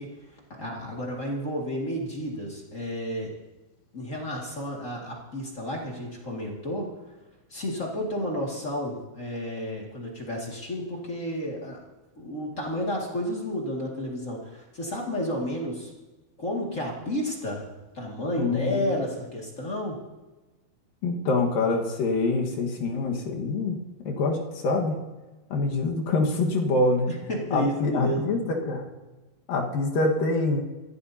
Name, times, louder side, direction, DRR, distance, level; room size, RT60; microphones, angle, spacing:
voice 1, 0.0-3.3 3.9-6.9 7.5-11.8 12.1-15.9 16.4-17.7 17.9-20.0 27.1-28.2, equal, 30° left, -2 dB, 1.6 m, -31 dB
voice 2, 18.4-19.0 21.0-23.8 24.0-25.0 25.5-27.1 27.5-28.9 29.5-30.6, left 3 dB, 65° left, 1 dB, 3.1 m, -25 dB
24.0 x 15.5 x 2.8 m, 1.2 s
omnidirectional pair, 4.4 m